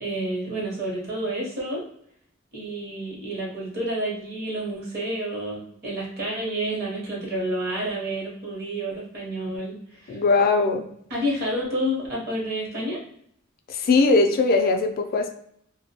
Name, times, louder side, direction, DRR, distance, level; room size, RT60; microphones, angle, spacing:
voice 1, 0.0-1.8 2.5-9.8 10.0-10.2 11.1-13.0, right 1 dB, 50° right, -3 dB, 0.8 m, -29 dB
voice 2, 10.1-10.8 13.7-15.3, left 3 dB, 45° left, 6 dB, 0.3 m, -20 dB
2.2 x 2.1 x 2.8 m, 0.68 s
head